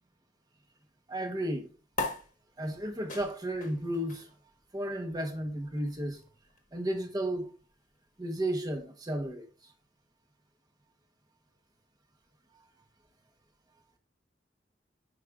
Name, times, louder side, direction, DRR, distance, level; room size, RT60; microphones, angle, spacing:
voice 1, 1.1-1.7 2.6-4.3 4.7-6.2 6.7-7.5 8.2-9.7 12.5-12.6, right 1 dB, 25° right, 1.0 m, -33 dB
sound 1, 1.9-8.7, left 2 dB, 45° left, 1.3 m, -43 dB
9.8 x 5.0 x 2.4 m
head